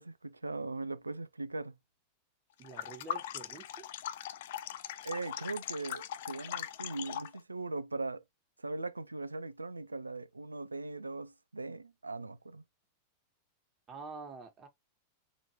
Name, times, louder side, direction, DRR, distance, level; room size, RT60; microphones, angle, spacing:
voice 1, 0.0-1.8 5.0-8.2 8.6-12.6, right 3 dB, 80° right, 0.3 m, -40 dB
sound 1, 2.6-7.4, left 11 dB, 55° left, 0.3 m, -40 dB
voice 2, 2.6-3.9 13.9-14.7, right 4 dB, 30° right, 1.5 m, -47 dB
3.9 x 3.0 x 2.9 m
figure-of-eight pair, 90°, 0 cm